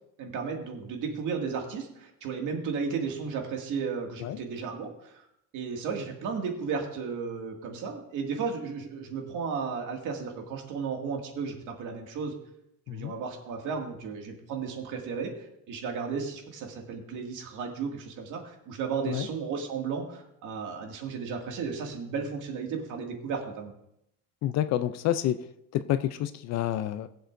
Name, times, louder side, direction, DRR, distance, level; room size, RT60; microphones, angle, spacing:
voice 1, 0.2-5.1 5.5-12.3 12.9-23.7, right 5 dB, 55° right, 2 dB, 2.1 m, -34 dB
voice 2, 24.4-25.4 25.7-27.1, left 12 dB, 45° left, 13 dB, 0.4 m, -28 dB
20.5 x 7.7 x 2.6 m, 0.79 s
cardioid pair, 170°, 36 cm